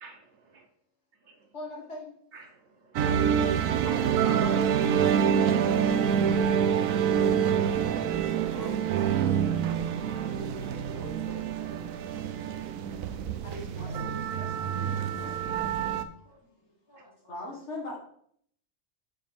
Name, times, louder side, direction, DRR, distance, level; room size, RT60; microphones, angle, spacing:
voice 1, 0.0-0.7 1.3-1.5 2.3-3.0 10.7-10.8 12.4-12.9, right 4 dB, 65° right, 1.0 m, -53 dB
voice 2, 1.5-2.1 3.8-5.5 5.8-6.0 6.9-7.9 10.1-12.1 13.4-15.7 17.3-18.0, equal, 60° left, 1.9 m, -42 dB
sound 1, 2.9-16.0, right 8 dB, 85° right, 1.0 m, -26 dB
voice 3, 8.5-9.5 16.2-16.4 16.9-17.1, equal, 20° left, 1.3 m, -44 dB
6.6 x 5.7 x 3.6 m
omnidirectional pair, 1.4 m